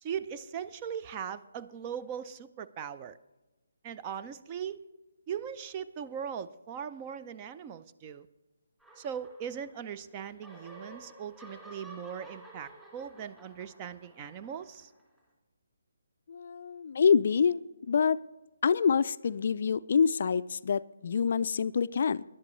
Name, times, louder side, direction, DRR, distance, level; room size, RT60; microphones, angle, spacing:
voice 1, 0.0-3.2 3.8-4.8 5.3-8.3 9.0-14.9, right 8 dB, 25° right, 12 dB, 0.5 m, -39 dB
sound 1, 8.8-9.9 10.2-15.2, right 2 dB, 10° right, 3.1 m, -52 dB
voice 2, 16.3-17.6 17.9-18.2 18.6-22.2, left 6 dB, 50° left, 16 dB, 0.3 m, -26 dB
19.0 x 11.0 x 3.1 m, 1.1 s
figure-of-eight pair, 145°, 0 cm